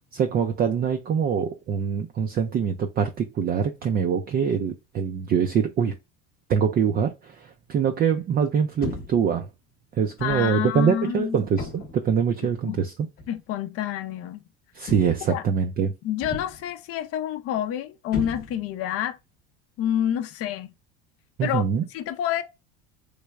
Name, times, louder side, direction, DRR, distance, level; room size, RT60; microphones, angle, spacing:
voice 1, 0.1-6.0 6.5-9.5 10.0-12.9 14.7-15.9 21.4-21.8, right 7 dB, 30° right, 0.4 m, -24 dB
Heavy Impacts, 8.8-9.3 10.2-10.5 11.6-12.1 13.2-13.4 14.9-15.4 16.2-16.7 18.1-18.8, left 3 dB, 30° left, 0.9 m, -35 dB
voice 2, 10.2-11.4 12.6-12.8 13.3-14.4 15.3-15.5 16.0-19.2 19.8-20.7 21.4-21.6 21.9-22.4, left 11 dB, 50° left, 0.6 m, -28 dB
3.2 x 2.2 x 3.4 m
supercardioid pair, 115°, 31 cm